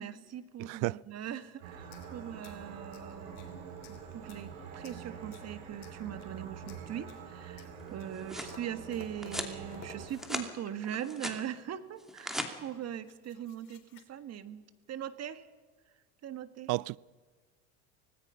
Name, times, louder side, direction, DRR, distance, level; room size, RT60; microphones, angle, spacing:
voice 1, 0.0-15.5 16.2-16.7, right 10 dB, 45° right, 1.6 m, -41 dB
voice 2, 0.6-1.0 16.7-17.0, right 23 dB, 60° right, 0.5 m, -32 dB
sound 1, 1.6-10.1, right 7 dB, 85° right, 6.2 m, -46 dB
sound 2, 1.8-3.5 3.8-4.5 4.8-5.5 5.8-6.4 6.7-7.3 7.6-11.0 11.4-11.8 12.5-12.6 12.8-14.0, left 8 dB, 75° left, 3.3 m, -54 dB
sound 3, 7.9-8.6 9.2-9.6 10.0-10.5 10.8-11.4 12.0-12.5, equal, ahead, 2.6 m, -38 dB
25.0 x 19.0 x 5.7 m
supercardioid pair, 90°, 36 cm